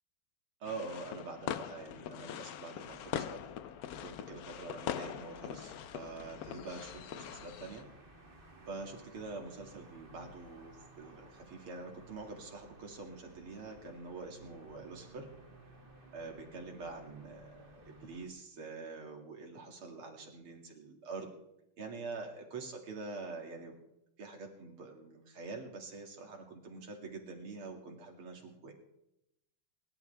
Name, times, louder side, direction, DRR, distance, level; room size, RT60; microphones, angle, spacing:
sound 1, 0.6-7.8, left 10 dB, 75° left, 0.8 m, -42 dB
voice 1, 0.6-3.4 4.0-7.9 8.7-15.3 16.1-21.3 21.8-23.8 24.2-28.7, right 3 dB, 85° right, 2 dB, 3.2 m, -45 dB
sound 2, 2.8-18.3, right 2 dB, 25° right, 2.3 m, -57 dB
25.0 x 12.0 x 3.4 m, 0.85 s
omnidirectional pair, 2.3 m